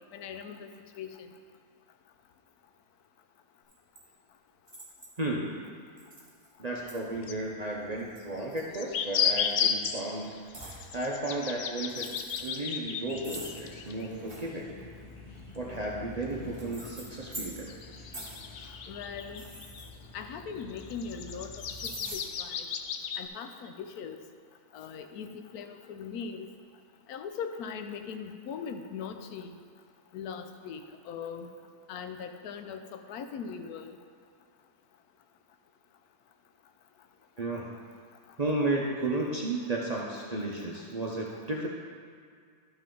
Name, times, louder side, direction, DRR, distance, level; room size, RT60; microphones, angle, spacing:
voice 1, 0.1-0.7 1.0-1.3 18.5-19.5 20.1-22.7 23.1-24.2 24.7-26.5 27.1-29.6 30.1-31.5 31.9-34.0, left 6 dB, 85° left, 7 dB, 1.1 m, -40 dB
sound 1, 3.7-4.0 4.7-5.2 6.0-6.5 6.9-7.0 8.0-9.0 9.4-9.7 10.5-10.8 11.8-12.6 13.2-14.5 15.5-17.8 18.1-18.5 19.2-20.5 21.6-22.2, right 1 dB, 20° right, 1.2 m, -45 dB
voice 2, 5.2-5.7 6.6-10.3 10.6-14.7 15.5-17.7 37.4-37.7 38.4-41.7, right 2 dB, 40° right, -3 dB, 0.5 m, -33 dB
sound 2, 6.9-7.0 7.2-7.3 8.4-14.5 14.9-15.0 15.4-15.5 16.9-17.0 17.5-19.9 20.4-23.3, left 7 dB, 70° left, 0.6 m, -34 dB
sound 3, 13.0-22.0, left 2 dB, 30° left, 1.1 m, -48 dB
11.5 x 5.7 x 3.8 m, 2.2 s
omnidirectional pair, 1.6 m